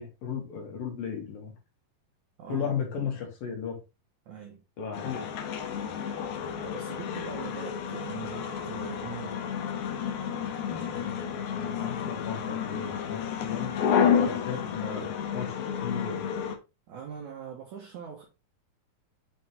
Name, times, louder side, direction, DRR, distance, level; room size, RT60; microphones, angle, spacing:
voice 1, 0.0-1.5 2.5-3.8 4.8-5.2 11.5-13.7 14.3-16.2, left 7 dB, 65° left, 4.2 m, -35 dB
voice 2, 2.4-3.2 4.3-4.6 6.6-9.4 16.9-18.2, right 8 dB, 60° right, 2.2 m, -42 dB
sound 1, 4.9-16.6, left 7 dB, 80° left, 3.1 m, -30 dB
7.7 x 5.4 x 3.6 m
omnidirectional pair, 4.5 m